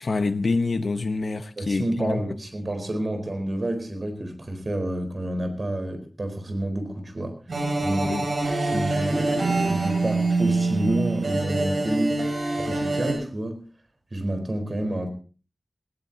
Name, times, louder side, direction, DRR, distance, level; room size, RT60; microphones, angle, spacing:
voice 1, 0.0-2.2 8.0-8.3, left 3 dB, 70° left, 1.2 m, -26 dB
voice 2, 1.6-7.4 7.8-8.2 8.6-12.2 12.5-13.6 14.1-15.1, right 1 dB, 50° right, 4.4 m, -29 dB
sound 1, 7.5-13.1, right 2 dB, 75° right, 7.7 m, -25 dB
18.5 x 18.5 x 2.9 m
wide cardioid pair, 75°, 0 cm